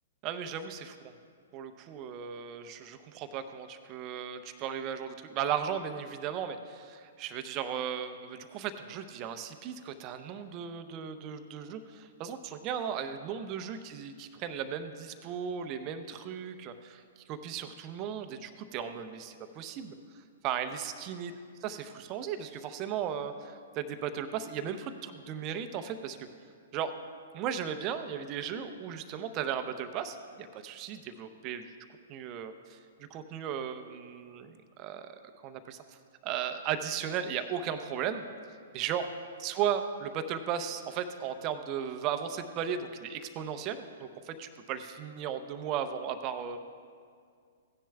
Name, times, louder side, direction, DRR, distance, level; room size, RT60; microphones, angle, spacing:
voice 1, 0.2-1.1 1.5-20.0 20.4-21.3 21.6-26.3 26.7-26.9 27.3-31.7 32.1-32.8 33.1-36.0 36.2-38.2 38.7-39.1 39.4-46.6, right 8 dB, 30° right, 9 dB, 0.6 m, -36 dB
16.5 x 10.0 x 2.3 m, 2.2 s
figure-of-eight pair, 115°, 0 cm